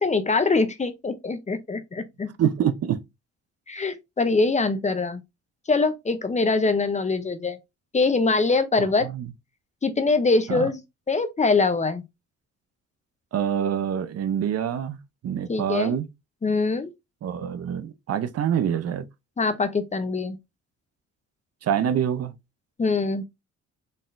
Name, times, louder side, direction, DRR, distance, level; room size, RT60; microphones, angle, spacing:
voice 1, 0.0-2.3 3.7-5.2 5.7-7.6 7.9-9.1 9.8-10.8 11.1-12.0 15.5-15.9 16.4-16.9 19.4-20.4 22.8-23.2, left 3 dB, 25° left, 0.6 m, -23 dB
voice 2, 2.4-3.0 8.8-9.3 10.5-10.7 13.3-15.0 15.2-16.1 17.2-19.0 21.6-22.3, right 9 dB, 55° right, 0.6 m, -26 dB
4.1 x 3.6 x 2.5 m
cardioid pair, 90°, 30 cm